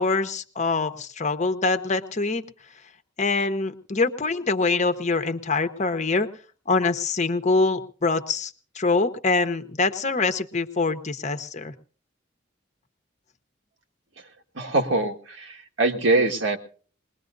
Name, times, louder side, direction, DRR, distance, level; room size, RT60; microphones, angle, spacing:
voice 1, 0.0-2.4 3.2-6.3 6.7-11.7, left 3 dB, 40° left, 9 dB, 1.0 m, -24 dB
voice 2, 14.5-16.6, right 2 dB, 85° right, 2 dB, 1.8 m, -23 dB
21.5 x 20.5 x 2.7 m, 0.42 s
head